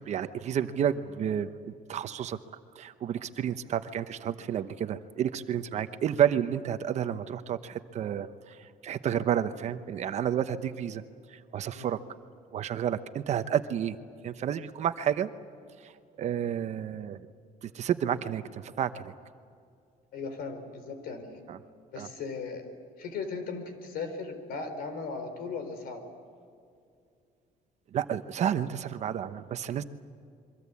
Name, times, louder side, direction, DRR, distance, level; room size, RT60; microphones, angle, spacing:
voice 1, 0.0-2.4 2.7-11.0 11.3-12.0 12.5-14.0 14.2-15.3 15.8-15.9 16.2-17.3 17.6-19.1 21.5-21.6 22.0-22.1 27.9-29.8, right 9 dB, 45° right, 10 dB, 1.0 m, -30 dB
voice 2, 20.1-21.4 21.9-22.7 23.0-26.1, left 4 dB, 75° left, 8 dB, 4.4 m, -37 dB
28.0 x 23.5 x 8.5 m, 2.4 s
cardioid pair, 170°, 16 cm